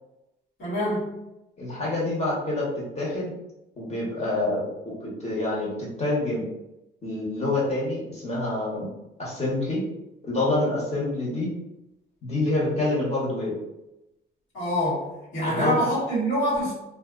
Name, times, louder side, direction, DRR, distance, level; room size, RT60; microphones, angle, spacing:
voice 1, 0.6-1.2 14.5-16.7, equal, 70° left, -8 dB, 1.4 m, -26 dB
voice 2, 1.6-3.3 3.8-5.7 6.0-6.5 7.0-8.9 9.2-9.9 10.2-11.5 12.2-13.6 15.5-15.8, left 2 dB, 30° left, -5 dB, 1.2 m, -27 dB
2.3 x 2.3 x 2.4 m, 0.91 s
cardioid pair, 90°, 20 cm